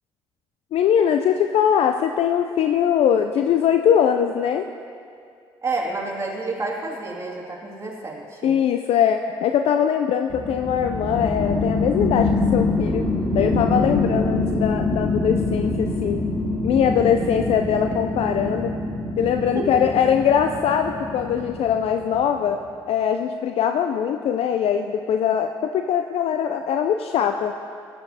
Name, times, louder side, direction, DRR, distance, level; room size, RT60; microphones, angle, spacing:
voice 1, 0.7-4.7 8.4-13.0 13.3-16.2 16.6-18.7 19.2-27.5, left 8 dB, 60° left, 7 dB, 0.4 m, -21 dB
voice 2, 5.6-8.6 19.5-19.7, right 3 dB, 25° right, -3 dB, 2.3 m, -29 dB
sound 1, 10.3-22.4, left 2 dB, 45° left, 2.7 m, -25 dB
14.5 x 10.0 x 2.8 m, 2.4 s
hypercardioid pair, 50°, 11 cm